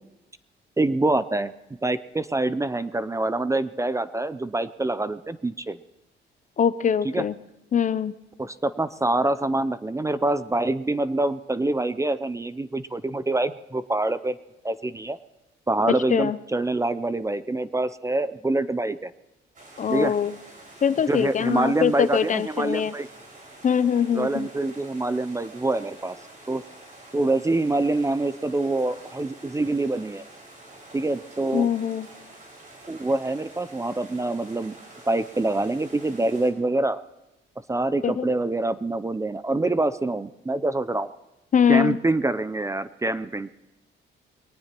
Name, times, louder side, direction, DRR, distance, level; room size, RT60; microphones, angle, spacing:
voice 1, 0.8-1.5 1.8-5.8 7.1-7.2 8.4-14.4 14.6-15.2 15.7-19.1 19.9-20.1 21.1-23.1 24.1-26.2 26.5-26.6 27.1-30.2 30.9-31.7 32.9-34.8 35.1-37.0 37.7-41.1 41.7-43.5, right 2 dB, 15° right, 15 dB, 0.5 m, -25 dB
voice 2, 6.6-7.3 7.7-8.1 15.9-16.4 19.8-20.3 20.8-22.9 23.6-24.5 31.5-32.1 38.0-38.3 41.5-42.0, left 7 dB, 40° left, 15 dB, 0.5 m, -22 dB
sound 1, 19.5-36.5, right 2 dB, 40° right, 5.4 m, -47 dB
22.0 x 18.5 x 3.0 m, 0.93 s
cardioid pair, 90°, 20 cm